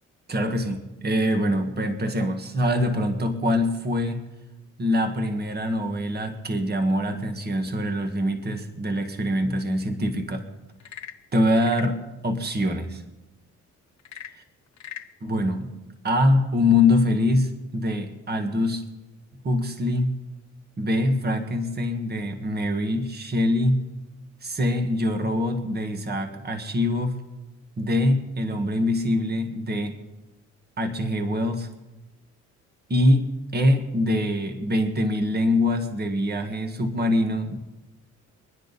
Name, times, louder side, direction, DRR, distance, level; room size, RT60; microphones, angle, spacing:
voice 1, 0.3-4.2 4.8-10.5 11.3-13.0 15.2-15.7 16.0-18.9 19.4-20.2 20.8-23.8 24.4-27.2 27.8-30.0 30.8-31.7 32.9-37.6, left 1 dB, 35° right, 5 dB, 1.8 m, -24 dB
Frog / Percussion / Wood, 10.7-12.0 14.0-15.1, left 10 dB, 65° left, 1.0 m, -40 dB
25.0 x 10.5 x 4.1 m, 1.0 s
cardioid pair, 90°, 30 cm